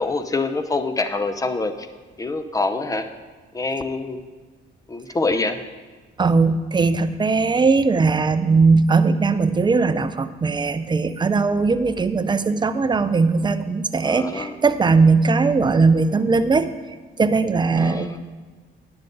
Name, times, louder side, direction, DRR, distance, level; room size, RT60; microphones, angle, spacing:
voice 1, 0.0-1.9 2.2-3.1 3.5-4.2 4.9-5.6 14.0-14.6 17.8-18.2, left 3 dB, 15° left, 9 dB, 0.7 m, -25 dB
voice 2, 6.2-16.7 17.2-18.2, right 4 dB, 20° right, 11 dB, 0.5 m, -19 dB
10.5 x 8.9 x 3.9 m, 1.3 s
cardioid pair, 90°, 20 cm